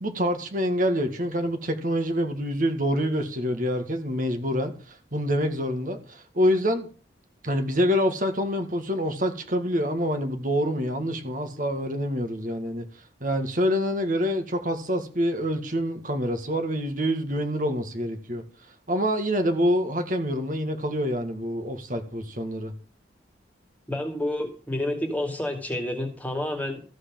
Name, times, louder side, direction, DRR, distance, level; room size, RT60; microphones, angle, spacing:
voice 1, 0.0-6.9 7.4-12.8 13.2-18.4 18.9-22.7, equal, 45° right, 1.9 m, -26 dB
voice 2, 23.9-26.8, left 1 dB, 10° left, 2.5 m, -29 dB
14.5 x 6.4 x 7.7 m
head